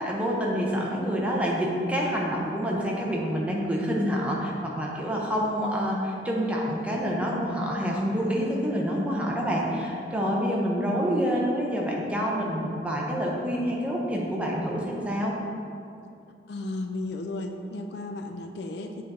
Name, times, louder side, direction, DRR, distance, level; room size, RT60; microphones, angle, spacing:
voice 1, 0.0-15.3, equal, 5° right, -3 dB, 0.8 m, -27 dB
voice 2, 16.5-19.0, left 2 dB, 65° left, 5 dB, 0.4 m, -34 dB
7.5 x 3.9 x 4.2 m, 2.6 s
head